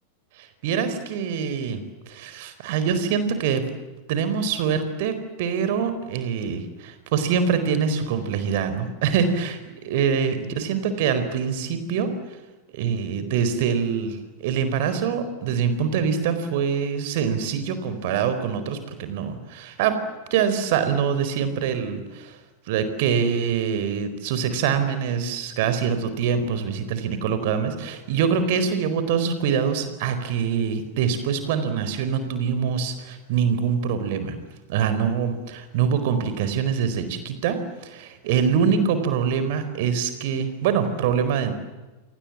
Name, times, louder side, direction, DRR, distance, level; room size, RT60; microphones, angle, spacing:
voice 1, 0.4-3.6 4.1-12.1 12.7-20.0 20.3-22.4 22.7-34.4 34.7-41.6, right 7 dB, 50° right, 10 dB, 4.5 m, -24 dB
29.5 x 25.5 x 7.5 m, 1.2 s
figure-of-eight pair, 90°, 0 cm